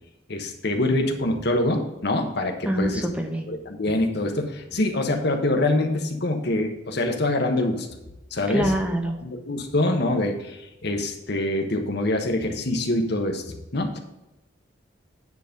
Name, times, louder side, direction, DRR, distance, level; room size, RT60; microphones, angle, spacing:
voice 1, 0.3-3.0 3.5-7.9 8.3-8.7 9.2-13.4 13.7-14.0, left 1 dB, 60° left, 5 dB, 1.2 m, -25 dB
voice 2, 2.7-3.5 8.5-9.2, equal, 5° right, 3 dB, 0.8 m, -25 dB
9.5 x 4.1 x 5.2 m, 0.96 s
head